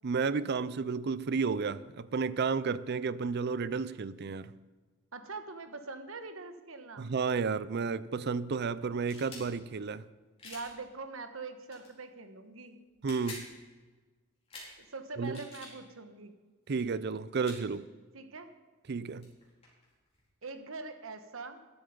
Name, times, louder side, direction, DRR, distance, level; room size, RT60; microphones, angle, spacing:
voice 1, 0.0-4.5 7.0-10.1 13.0-13.5 15.2-15.4 16.7-17.9 18.9-19.3, right 5 dB, 55° right, 0.5 m, -32 dB
voice 2, 5.1-7.1 10.4-12.8 14.8-16.3 18.1-18.5 20.4-21.6, right 3 dB, 75° right, 1.2 m, -43 dB
sound 1, 9.0-9.5 10.4-10.7 11.7-11.9 12.9-13.5 14.5-14.7 15.2-15.7 16.7-16.8 17.4-17.6 19.0-19.1 19.2-20.5, left 2 dB, 30° left, 4.4 m, -47 dB
13.5 x 11.0 x 5.2 m
head